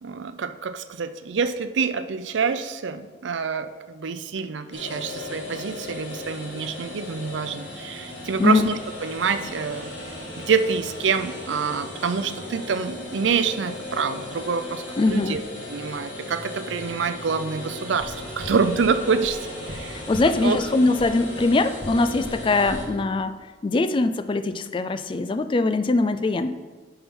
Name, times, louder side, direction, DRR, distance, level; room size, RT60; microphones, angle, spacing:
voice 1, 0.0-9.9 10.4-15.4 15.7-20.0 20.4-20.6, right 5 dB, 80° right, 11 dB, 0.5 m, -26 dB
sound 1, 4.7-22.8, left 2 dB, 65° left, 2.0 m, -36 dB
voice 2, 15.0-15.4 20.1-23.4 23.6-26.5, left 3 dB, 25° left, 11 dB, 0.3 m, -22 dB
sound 2, 18.0-18.1 18.4-18.5 18.8-18.9 19.2-19.3 19.7-19.8 20.1-20.2 20.5-20.6 21.0-21.1 21.4-21.5 21.8-21.9 22.2-22.3 22.7-22.8, right 1 dB, 25° right, 1.6 m, -38 dB
10.0 x 5.5 x 3.7 m, 1.4 s
head